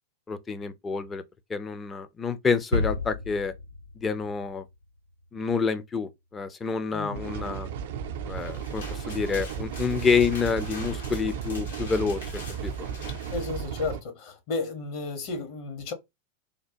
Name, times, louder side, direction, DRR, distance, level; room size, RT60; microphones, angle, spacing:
voice 1, 0.3-1.2 1.5-3.5 4.0-4.6 5.3-7.7 8.2-12.2 12.6-12.9, left 5 dB, 20° left, 0.4 m, -28 dB
sound 1, 2.7-5.4, left 2 dB, 90° left, 0.4 m, -32 dB
voice 2, 6.9-7.3 13.3-15.9, left 3 dB, 45° left, 1.0 m, -33 dB
sound 2, 7.1-14.0, right 7 dB, 55° right, 0.3 m, -34 dB
sound 3, 8.2-13.5, left 3 dB, 70° left, 1.1 m, -44 dB
3.3 x 2.1 x 2.5 m
figure-of-eight pair, 90°, 0 cm